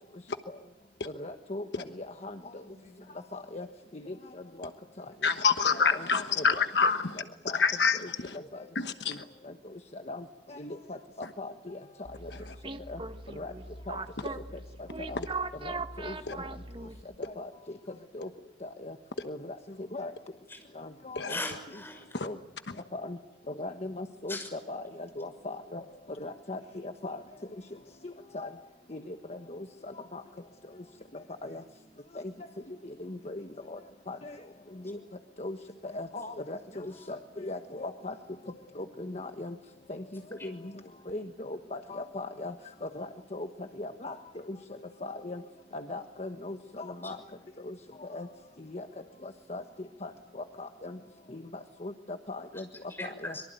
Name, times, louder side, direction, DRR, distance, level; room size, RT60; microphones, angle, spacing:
voice 1, 1.2-1.6 2.0-2.3 3.3-3.7 3.9-4.1 4.6-4.7 5.0-5.1 5.7-6.6 7.4-7.7 9.1-9.2 9.9-11.0 11.4-11.8 12.9-13.0 13.4-13.5 13.9-14.0 15.1-15.2 15.6-15.8 16.0-16.1 17.4-17.5 18.1-18.3 18.6-18.9 19.2-19.4 19.9-20.1 20.8-21.4 22.2-22.4 22.9-23.2 23.6-25.8 26.2-27.2 28.0-28.5 28.9-29.6 30.1-30.2 31.4-31.6 33.0-33.8 34.1-34.3 34.8-35.0 35.4-35.6 35.8-38.1 38.8-39.5 39.9-40.6 41.1-42.5 42.8-43.5 43.8-44.2 45.0-45.4 45.7-47.2 47.7-47.8 48.1-48.3 48.7-48.9 49.2-49.6 50.0-50.1 50.6-51.0 51.3-51.4 51.8-52.6 53.2-53.3, left 2 dB, 40° left, 6 dB, 1.3 m, -39 dB
voice 2, 2.6-3.0 20.5-20.6 21.3-22.2 24.3-24.5 52.5-52.6 52.9-53.4, left 2 dB, 15° left, 4 dB, 6.1 m, -39 dB
voice 3, 5.2-7.2 7.5-8.4 8.7-9.2 12.3-12.6 16.3-16.4 21.1-21.4 22.1-22.3, left 5 dB, 70° left, 8 dB, 1.2 m, -27 dB
sound 1, 12.0-17.1, right 3 dB, 30° right, 1.3 m, -39 dB
24.5 x 23.5 x 9.2 m, 0.95 s
head